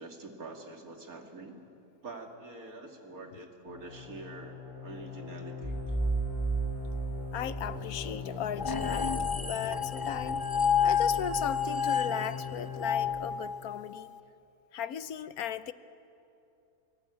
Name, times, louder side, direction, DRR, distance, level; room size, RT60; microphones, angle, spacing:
voice 1, 0.0-1.6 2.0-6.0, right 2 dB, 80° right, 3 dB, 2.9 m, -46 dB
sound 1, 3.7-13.1, left 6 dB, 55° left, 8.3 m, -41 dB
sound 2, 5.6-8.5, right 4 dB, ahead, 1.0 m, -33 dB
voice 2, 7.3-10.4 10.8-14.1 14.7-15.7, left 9 dB, 90° left, 14 dB, 1.3 m, -37 dB
sound 3, 8.6-14.0, left 6 dB, 25° left, 0.4 m, -30 dB
28.0 x 20.0 x 8.5 m, 2.7 s
omnidirectional pair, 1.5 m